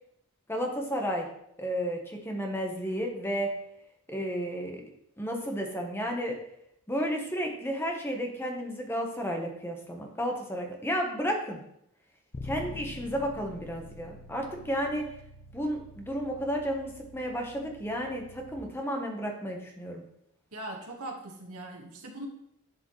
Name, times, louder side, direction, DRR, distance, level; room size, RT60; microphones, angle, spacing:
voice 1, 0.5-1.3 1.6-3.5 4.1-4.8 5.2-6.3 6.9-11.6 12.4-15.1 15.5-20.0, equal, 10° left, 2 dB, 1.1 m, -32 dB
Bass guitar, 12.3-18.6, left 2 dB, 35° left, 0.6 m, -46 dB
voice 2, 20.5-22.3, right 1 dB, 80° right, 0 dB, 1.5 m, -40 dB
11.5 x 4.8 x 3.2 m, 0.75 s
head